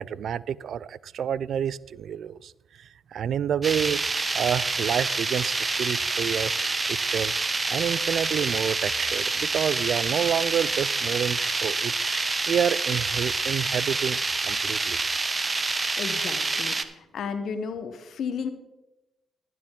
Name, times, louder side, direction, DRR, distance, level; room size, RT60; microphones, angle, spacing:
voice 1, 0.0-2.5 2.8-4.0 4.3-6.5 6.9-7.3 7.7-11.9 12.5-14.2 14.5-15.0, right 9 dB, 65° right, 21 dB, 0.3 m, -28 dB
sound 1, 3.6-16.8, right 3 dB, 35° right, 0.8 m, -27 dB
voice 2, 16.0-18.5, left 6 dB, 70° left, 9 dB, 0.8 m, -33 dB
11.5 x 9.3 x 3.6 m, 0.95 s
supercardioid pair, 55°, 0 cm